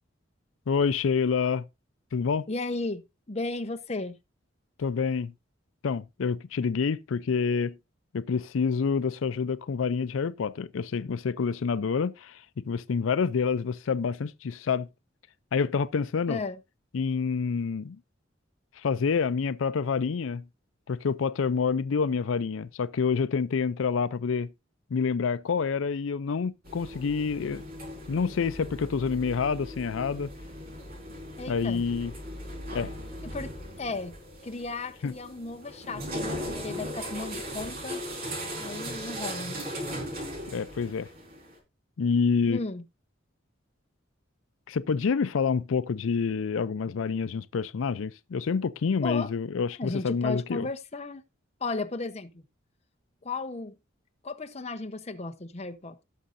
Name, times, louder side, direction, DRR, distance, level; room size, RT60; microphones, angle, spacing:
voice 1, 0.7-1.7 2.1-2.4 4.8-5.3 5.8-7.8 8.1-14.9 15.5-16.4 16.9-18.0 18.8-20.4 20.9-24.5 24.9-27.6 28.1-30.3 31.5-32.1 32.7-32.9 35.0-35.1 40.5-41.1 42.0-42.6 44.7-50.7, left 5 dB, 90° left, 0.4 m, -27 dB
voice 2, 2.5-3.0 3.3-4.2 16.3-16.6 31.4-31.8 33.2-33.5 33.8-34.1 34.4-38.0 38.6-39.6 42.4-42.8 49.0-49.3 49.8-51.2 51.6-52.4 53.2-53.7 54.2-56.0, left 3 dB, 35° left, 0.9 m, -34 dB
sound 1, 26.6-41.6, equal, 50° right, 4.3 m, -38 dB
17.0 x 6.3 x 2.6 m
head